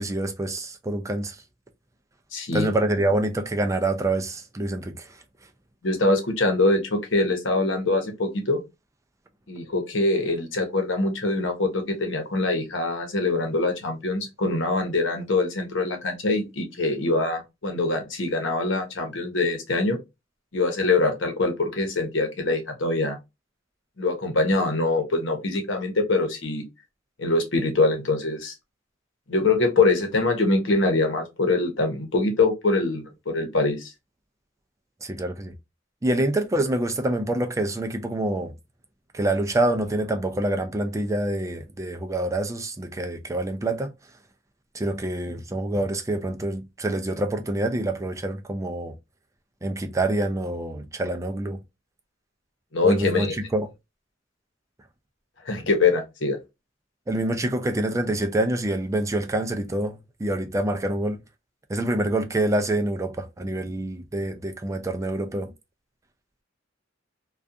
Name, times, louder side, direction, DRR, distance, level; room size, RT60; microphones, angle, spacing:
voice 1, 0.0-1.4 2.5-5.2 35.0-35.5 36.0-38.5 39.1-43.9 44.7-48.9 49.6-51.6 52.8-53.7 57.1-61.2 61.7-65.5, right 1 dB, 15° right, 0.3 m, -26 dB
voice 2, 2.3-2.7 5.8-8.6 9.5-20.0 20.5-23.2 24.0-26.6 27.2-28.5 29.3-33.9 52.7-53.3 55.5-56.4, left 3 dB, 70° left, 0.9 m, -24 dB
2.4 x 2.3 x 2.5 m
head